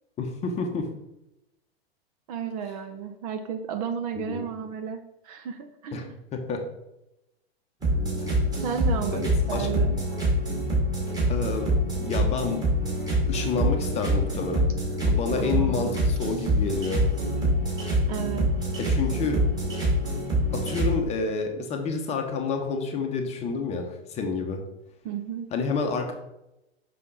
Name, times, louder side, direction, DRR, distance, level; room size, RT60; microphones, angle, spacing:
voice 1, 0.2-0.9 4.2-4.5 5.9-6.1 6.3-6.6 8.2-8.3 9.1-9.7 11.3-11.7 12.0-12.6 13.3-14.7 15.0-17.0 18.8-19.4 20.5-24.6 25.5-26.1, left 4 dB, 20° left, 4 dB, 0.8 m, -29 dB
voice 2, 2.3-6.1 8.6-10.0 15.4-16.1 18.1-18.5 19.2-19.3 25.0-25.5, right 7 dB, 35° right, 6 dB, 0.6 m, -33 dB
sound 1, 7.8-21.0, equal, 10° right, 2.2 m, -25 dB
5.8 x 5.6 x 3.8 m, 0.90 s
figure-of-eight pair, 100°, 31 cm